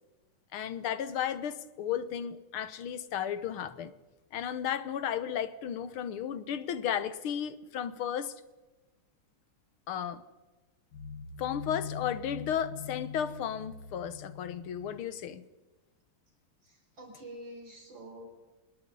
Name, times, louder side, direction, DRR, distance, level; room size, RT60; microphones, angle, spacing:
voice 1, 0.5-3.9 4.3-8.4 9.9-10.2 11.4-15.5, left 9 dB, 75° left, 1.9 m, -34 dB
sound 1, 10.9-15.0, left 6 dB, 60° left, 2.1 m, -43 dB
voice 2, 16.7-18.3, right 1 dB, 60° right, 5.6 m, -47 dB
26.0 x 21.0 x 5.5 m
omnidirectional pair, 2.4 m